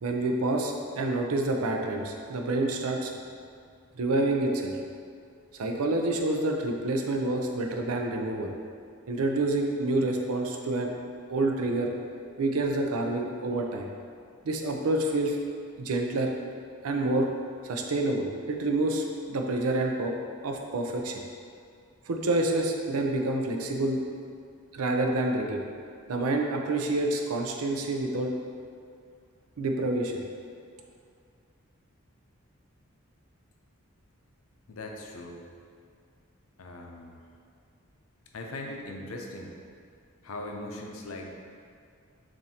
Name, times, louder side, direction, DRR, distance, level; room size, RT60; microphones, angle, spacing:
voice 1, 0.0-3.1 4.0-4.7 5.6-8.5 9.1-10.9 11.3-11.9 12.4-13.9 14.4-15.4 15.8-16.3 16.8-17.3 17.6-20.1 20.4-21.2 22.1-24.0 24.7-25.6 26.1-28.3 29.6-30.2, right 2 dB, 85° right, 2 dB, 0.5 m, -28 dB
voice 2, 34.7-35.4 36.6-37.2 38.3-39.6 40.2-41.4, left 2 dB, 75° left, 1 dB, 0.6 m, -39 dB
7.2 x 2.6 x 2.8 m, 2.2 s
head